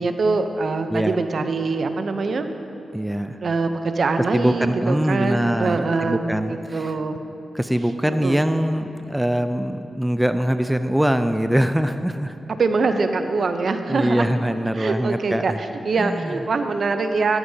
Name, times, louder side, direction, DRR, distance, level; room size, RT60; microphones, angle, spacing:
voice 1, 0.0-2.5 3.4-6.2 6.5-7.2 8.1-8.4 12.6-14.3 14.8-17.4, right 4 dB, 60° right, 7 dB, 0.6 m, -23 dB
voice 2, 2.9-3.4 4.3-7.0 7.5-12.3 13.9-15.6 16.0-16.3, equal, 5° right, 9 dB, 0.4 m, -23 dB
13.5 x 13.0 x 2.8 m, 2.8 s
cardioid pair, 95°, 0 cm